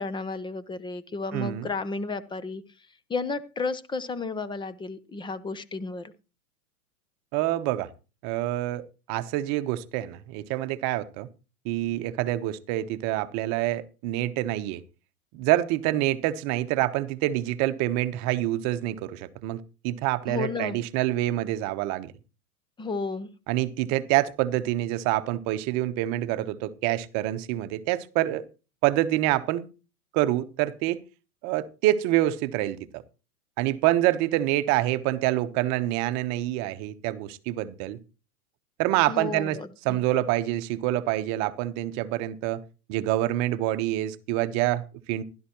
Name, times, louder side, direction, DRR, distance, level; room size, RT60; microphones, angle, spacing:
voice 1, 0.0-2.6 3.1-6.1 20.3-20.8 22.8-23.3 39.1-40.0, left 4 dB, 10° left, 0.8 m, -32 dB
voice 2, 1.3-1.7 7.3-7.9 8.2-11.3 11.6-14.8 15.3-22.1 23.5-28.5 28.8-29.7 30.1-31.0 31.4-33.0 33.6-38.0 38.8-39.6 39.8-42.6 42.9-45.2, right 15 dB, 40° right, 1.1 m, -26 dB
15.5 x 12.0 x 3.0 m
hypercardioid pair, 115°, 44 cm